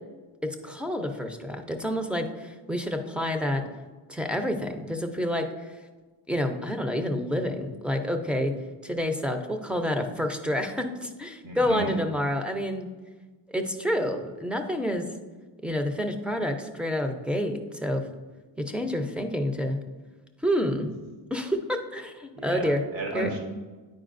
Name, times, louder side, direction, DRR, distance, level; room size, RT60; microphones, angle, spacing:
voice 1, 0.6-3.6 4.1-5.8 6.3-8.5 8.8-12.9 13.5-15.1 15.6-18.0 18.6-19.8 20.4-20.9 21.3-22.8 23.1-23.3, equal, 5° right, 5 dB, 0.5 m, -28 dB
voice 2, 11.4-11.9 22.3-23.4, right 2 dB, 70° right, 1 dB, 1.3 m, -33 dB
9.3 x 4.6 x 2.5 m, 1.3 s
cardioid pair, 125°, 46 cm